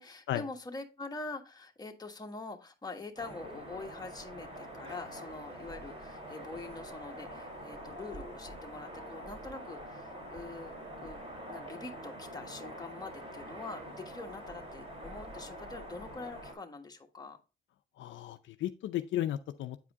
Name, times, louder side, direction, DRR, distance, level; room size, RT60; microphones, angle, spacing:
voice 1, 0.0-10.7 11.0-17.4, left 3 dB, 20° left, 1.5 m, -44 dB
sound 1, 3.2-16.5, equal, 30° right, 3.7 m, -45 dB
voice 2, 18.0-19.9, left 12 dB, 70° left, 0.5 m, -35 dB
9.0 x 4.8 x 3.6 m
cardioid pair, 90°, 20 cm